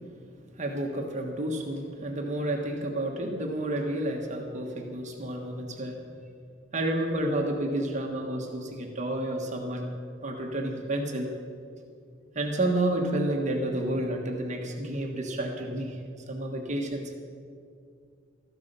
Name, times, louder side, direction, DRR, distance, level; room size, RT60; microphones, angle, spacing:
voice 1, 0.5-6.0 6.7-9.9 10.2-11.3 12.3-16.0 16.3-17.1, right 1 dB, 35° right, 2 dB, 1.3 m, -30 dB
13.5 x 11.5 x 6.8 m, 2.4 s
head